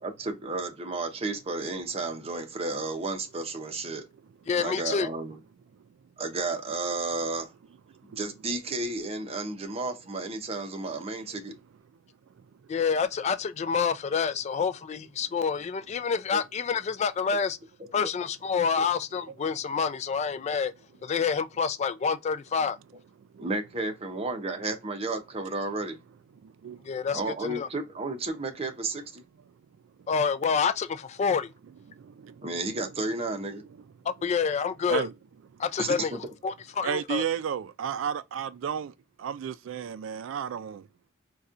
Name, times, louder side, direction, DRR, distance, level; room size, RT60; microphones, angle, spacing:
voice 1, 0.0-4.0 4.5-5.4 6.2-7.5 8.2-11.5 16.3-16.4 18.0-18.1 18.8-18.9 23.4-26.0 27.1-29.2 32.4-33.6 35.8-36.2, right 3 dB, 30° right, 0.7 m, -32 dB
voice 2, 4.5-5.1 12.7-17.6 17.9-20.7 21.0-22.8 26.9-27.7 30.1-31.5 34.2-35.1 35.6-36.2 36.4-37.2, left 6 dB, 35° left, 0.3 m, -28 dB
voice 3, 26.4-26.9 32.0-32.5 33.8-33.9 34.9-35.1 35.5-35.6 36.8-40.9, right 8 dB, 85° right, 0.3 m, -33 dB
4.1 x 2.3 x 2.5 m
head